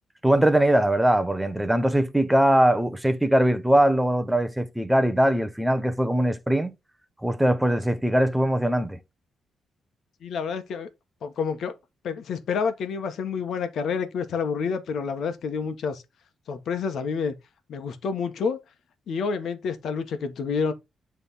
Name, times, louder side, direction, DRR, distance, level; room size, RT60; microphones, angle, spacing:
voice 1, 0.2-6.7 7.2-9.0, right 1 dB, 5° right, 0.9 m, -21 dB
voice 2, 10.2-10.9 11.2-11.8 12.0-16.0 16.5-17.3 17.7-18.6 19.1-20.7, left 5 dB, 70° left, 1.3 m, -28 dB
9.2 x 3.5 x 4.1 m
cardioid pair, 125°, 0 cm